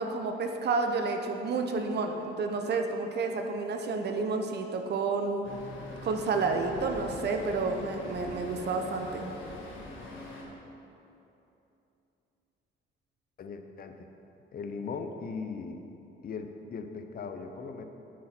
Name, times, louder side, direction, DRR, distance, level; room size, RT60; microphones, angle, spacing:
voice 1, 0.0-5.5 6.0-9.3, right 4 dB, 55° right, 4 dB, 0.7 m, -30 dB
Traffic noise roadway noise, 5.4-10.4, left 2 dB, 80° left, 1.5 m, -43 dB
voice 2, 13.4-14.1 14.5-15.8 16.2-17.8, left 5 dB, 50° left, 6 dB, 0.7 m, -38 dB
8.6 x 6.2 x 4.3 m, 2.9 s
cardioid pair, 90°, 20 cm